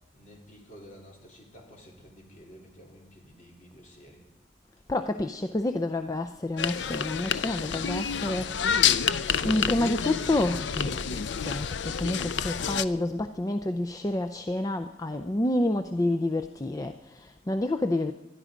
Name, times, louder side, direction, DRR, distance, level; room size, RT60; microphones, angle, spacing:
voice 1, 0.1-4.3, equal, 45° left, 3.8 m, -51 dB
voice 2, 4.9-9.1 9.4-18.1, left 1 dB, 20° left, 0.5 m, -29 dB
sound 1, 6.6-12.8, left 7 dB, 85° left, 0.5 m, -28 dB
21.0 x 12.5 x 5.1 m
head